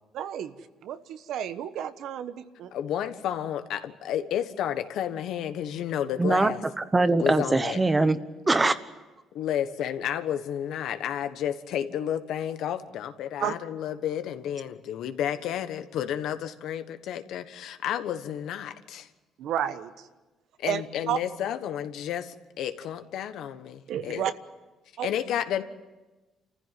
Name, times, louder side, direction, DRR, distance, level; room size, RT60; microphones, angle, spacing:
voice 1, 0.1-2.7 13.4-13.6 19.4-20.1 20.7-21.2 23.9-24.3 25.0-25.1, right 9 dB, 70° right, 11 dB, 1.2 m, -31 dB
voice 2, 2.7-6.6 7.2-7.8 9.3-19.1 20.6-24.2 25.0-25.6, left 10 dB, 75° left, 9 dB, 1.4 m, -31 dB
voice 3, 6.2-6.5 6.8-8.2 8.5-8.8, right 2 dB, 15° right, 12 dB, 1.1 m, -22 dB
28.5 x 15.0 x 9.4 m, 1.2 s
cardioid pair, 125°, 0 cm